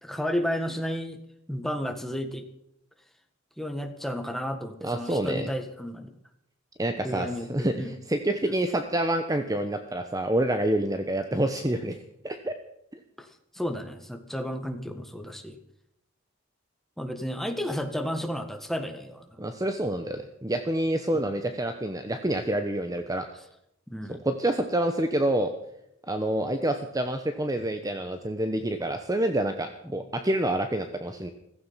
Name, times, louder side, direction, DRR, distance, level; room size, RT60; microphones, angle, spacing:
voice 1, 0.0-1.2 1.5-2.4 3.6-6.1 7.0-7.9 13.2-13.3 13.5-15.6 17.0-19.3 21.1-21.3 23.9-24.2 29.8-30.0, equal, ahead, 6 dB, 1.6 m, -32 dB
voice 2, 4.8-5.5 6.8-11.9 12.2-12.5 19.4-23.3 24.1-25.5 26.1-31.3, right 1 dB, 15° right, 7 dB, 1.0 m, -27 dB
15.5 x 15.5 x 5.7 m, 0.78 s
head